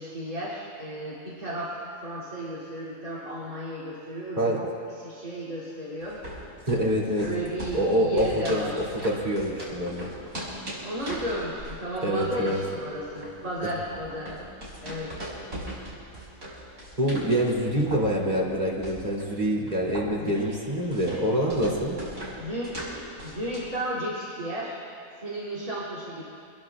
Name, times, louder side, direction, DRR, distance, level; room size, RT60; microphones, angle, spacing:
voice 1, 0.0-1.7 2.0-4.7 5.0-6.2 7.2-8.7 10.8-14.4 14.8-15.1 17.8-17.9 20.2-21.2 22.4-24.9 25.2-26.2, right 1 dB, 90° right, -7 dB, 3.7 m, -34 dB
sound 1, 6.0-23.8, right 1 dB, 75° right, 5.6 m, -40 dB
voice 2, 6.6-7.3 7.7-10.1 12.0-12.6 17.0-22.0, equal, 30° right, -4 dB, 3.1 m, -26 dB
27.5 x 21.5 x 2.5 m, 2.5 s
omnidirectional pair, 1.5 m